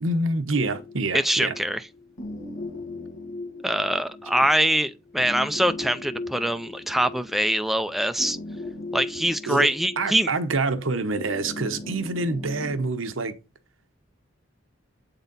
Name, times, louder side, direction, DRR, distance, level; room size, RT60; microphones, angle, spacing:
voice 1, 0.0-1.5 9.5-9.7 10.0-13.3, right 2 dB, 85° right, 0.9 m, -26 dB
sound 1, 0.5-12.9, left 2 dB, 75° left, 1.4 m, -38 dB
voice 2, 1.1-1.8 3.6-8.4 8.9-10.3, right 1 dB, ahead, 0.3 m, -23 dB
8.1 x 4.0 x 3.9 m
head